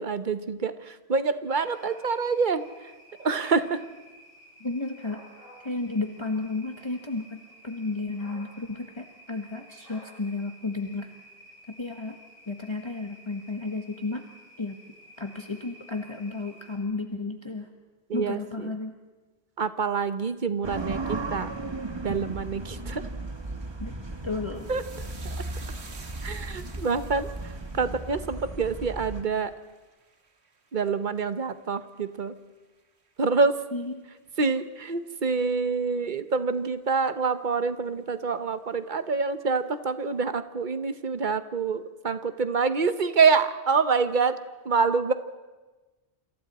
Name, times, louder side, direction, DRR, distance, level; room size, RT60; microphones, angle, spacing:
voice 1, 0.0-2.6 3.2-3.8 18.1-18.7 19.6-21.5 22.0-23.1 24.7-24.8 25.2-25.4 26.2-29.5 30.7-32.3 33.2-33.5 34.4-44.4 44.6-45.1, right 5 dB, 50° right, 11 dB, 1.2 m, -26 dB
sound 1, 1.5-16.8, equal, 60° left, 7.0 m, -52 dB
voice 2, 4.6-5.2 5.6-11.1 11.7-12.2 12.5-14.2 14.6-14.8 15.2-17.7 18.1-19.0 23.8-23.9 24.2-24.7 33.7-34.0, left 3 dB, 25° left, 3 dB, 1.3 m, -33 dB
sound 2, 20.6-29.2, right 2 dB, 25° right, 1.3 m, -36 dB
sound 3, 24.6-33.2 33.5-34.1 34.4-34.6, right 4 dB, 85° right, 1.8 m, -52 dB
28.0 x 26.5 x 4.3 m, 1.2 s
omnidirectional pair, 1.1 m